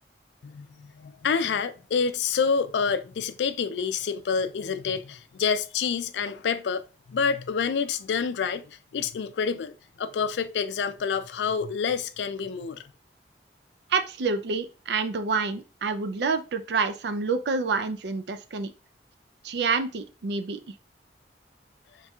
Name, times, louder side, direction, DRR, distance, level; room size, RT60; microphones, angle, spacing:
voice 1, 0.4-6.8 7.1-12.9, left 6 dB, 80° left, 0.4 m, -28 dB
voice 2, 13.9-18.7 19.4-20.6, right 4 dB, 75° right, 0.4 m, -28 dB
4.3 x 3.3 x 2.3 m
head